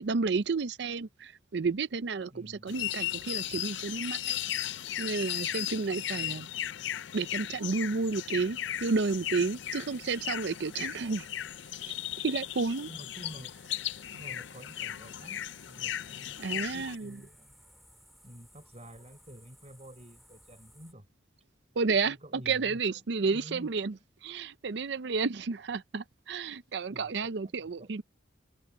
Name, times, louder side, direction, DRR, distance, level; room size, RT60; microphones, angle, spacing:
voice 1, 0.0-4.4 5.0-6.5 7.1-11.3 11.9-12.9 16.4-17.2 21.8-24.0 24.2-28.0, right 4 dB, 65° right, 0.5 m, -31 dB
voice 2, 2.3-2.8 6.1-6.4 9.8-10.2 12.9-13.5 14.1-17.6 18.2-21.1 22.0-24.0 26.9-27.9, equal, 35° right, 4.2 m, -50 dB
sound 1, 2.7-16.9, left 12 dB, 70° left, 0.5 m, -36 dB
sound 2, 8.7-20.9, equal, ahead, 3.7 m, -59 dB
head